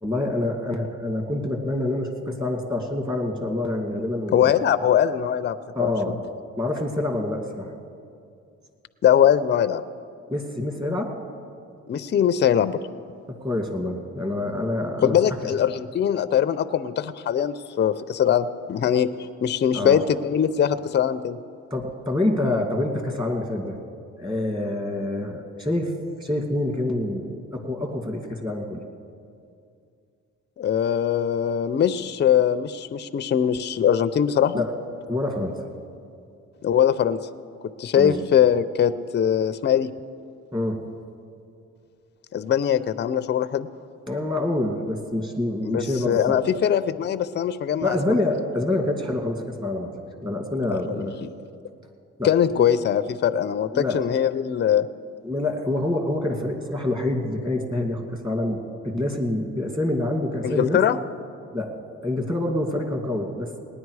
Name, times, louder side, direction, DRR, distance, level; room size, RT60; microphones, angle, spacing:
voice 1, 0.0-4.4 5.7-6.2 6.6-7.7 10.3-11.2 13.3-15.1 15.4-15.5 19.7-20.0 21.7-23.8 24.2-25.9 26.2-28.8 34.5-34.7 35.1-35.6 38.0-38.2 40.5-40.8 44.1-46.6 47.8-49.9 50.2-51.2 52.2-52.3 53.7-54.0 55.2-60.8 61.5-61.7 62.0-63.6, left 1 dB, 15° right, 3 dB, 2.0 m, -26 dB
voice 2, 4.3-6.1 9.0-9.8 11.9-12.8 15.0-19.1 19.4-21.4 30.6-34.6 36.6-37.2 37.8-39.9 42.3-43.7 45.6-48.0 50.7-51.1 52.2-54.9 60.4-61.0, left 9 dB, 35° left, 13 dB, 0.5 m, -21 dB
18.5 x 10.0 x 4.8 m, 2.4 s
cardioid pair, 90°, 30 cm